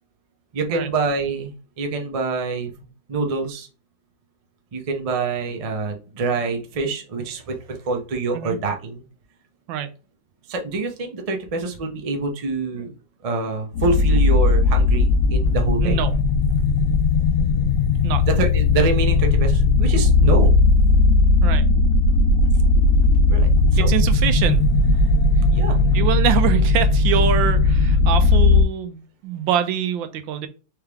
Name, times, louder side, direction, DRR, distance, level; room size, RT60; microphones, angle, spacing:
voice 1, 0.5-2.7 3.1-3.7 4.7-9.0 10.5-12.9 13.2-16.0 18.3-20.5 23.3-23.5 23.8-23.9 25.5-25.8, right 3 dB, 45° right, 0.4 m, -26 dB
sound 1, 13.7-28.6, left 3 dB, 80° left, 2.0 m, -17 dB
voice 2, 15.8-16.2 18.0-18.2 21.4-21.6 23.8-24.6 25.9-30.5, right 9 dB, 90° right, 1.4 m, -24 dB
4.5 x 3.4 x 3.4 m
omnidirectional pair, 2.0 m